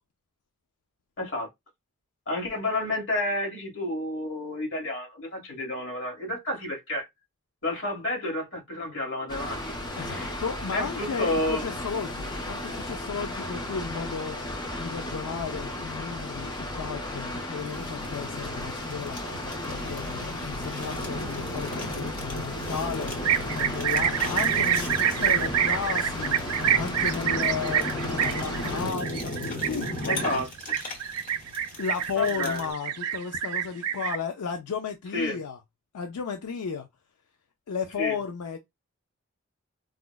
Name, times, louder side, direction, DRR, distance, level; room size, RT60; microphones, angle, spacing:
voice 1, 1.2-1.5 2.3-7.1 7.6-9.8 10.1-10.3 10.7-11.6 30.0-30.8 32.1-32.7 35.1-35.4 38.0-38.2, left 1 dB, 60° left, 1.4 m, -30 dB
Water, 9.3-28.9, left 1 dB, 20° left, 0.7 m, -35 dB
voice 2, 9.9-30.4 31.8-35.6 35.9-36.9 37.7-38.6, left 6 dB, 90° left, 0.4 m, -34 dB
Fire, 17.6-32.7, left 1 dB, 35° left, 1.0 m, -36 dB
sound 1, 23.2-34.2, right 9 dB, 85° right, 0.4 m, -27 dB
4.8 x 2.0 x 2.2 m
head